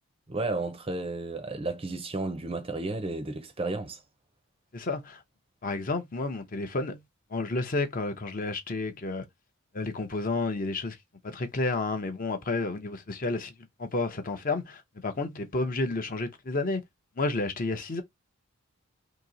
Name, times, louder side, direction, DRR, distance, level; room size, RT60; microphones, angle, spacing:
voice 1, 0.3-4.0, right 2 dB, 25° right, 0.5 m, -32 dB
voice 2, 4.7-5.2 5.6-7.0 7.3-9.3 9.7-11.0 11.2-13.5 13.8-16.8 17.2-18.0, left 3 dB, 40° left, 0.6 m, -31 dB
2.9 x 2.8 x 3.9 m
head